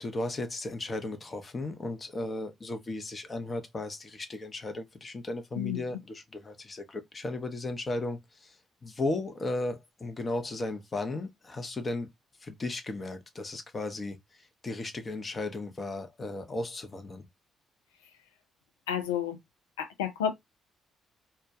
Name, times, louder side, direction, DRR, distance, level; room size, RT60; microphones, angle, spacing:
voice 1, 0.0-8.5 8.8-12.1 12.4-14.2 14.6-17.3, left 2 dB, 35° left, 0.7 m, -35 dB
voice 2, 5.5-6.0 18.9-19.4 19.8-20.3, left 9 dB, 85° left, 0.3 m, -31 dB
2.2 x 2.2 x 2.6 m
hypercardioid pair, 45°, 0 cm